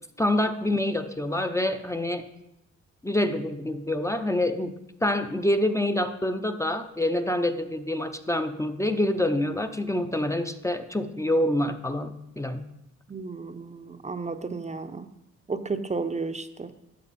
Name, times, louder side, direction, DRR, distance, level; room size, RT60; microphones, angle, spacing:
voice 1, 0.2-2.2 3.0-12.7, left 1 dB, 10° left, 7 dB, 0.7 m, -26 dB
voice 2, 13.1-15.1 15.5-16.7, right 4 dB, 25° right, 8 dB, 0.7 m, -33 dB
12.5 x 7.9 x 4.2 m, 0.87 s
cardioid pair, 90°, 30 cm